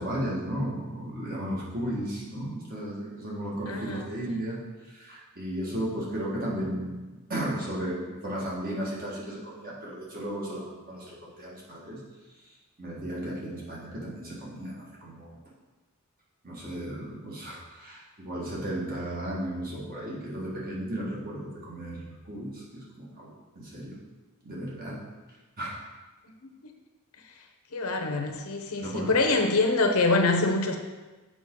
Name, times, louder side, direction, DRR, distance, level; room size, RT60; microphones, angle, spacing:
voice 1, 0.0-4.6 4.9-12.0 12.8-15.3 16.4-23.3 23.5-24.0 24.4-25.0 25.6-25.7 28.8-29.1, right 1 dB, 40° right, -5 dB, 1.8 m, -34 dB
voice 2, 3.7-4.0 4.3-4.5 26.4-26.5 27.7-30.8, left 3 dB, 80° left, 4 dB, 0.8 m, -25 dB
7.4 x 5.0 x 3.8 m, 1.2 s
head